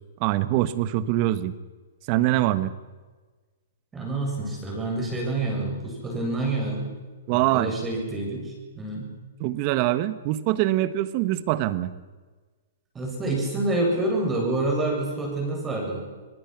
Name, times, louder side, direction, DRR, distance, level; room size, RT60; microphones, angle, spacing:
voice 1, 0.2-1.5 2.1-2.7 7.3-7.7 9.4-11.9, right 15 dB, 40° right, 14 dB, 1.3 m, -23 dB
voice 2, 3.9-6.9 7.3-9.1 12.9-16.0, right 2 dB, 15° right, 0 dB, 7.6 m, -27 dB
25.5 x 19.5 x 6.1 m, 1.3 s
hypercardioid pair, 135°, 0 cm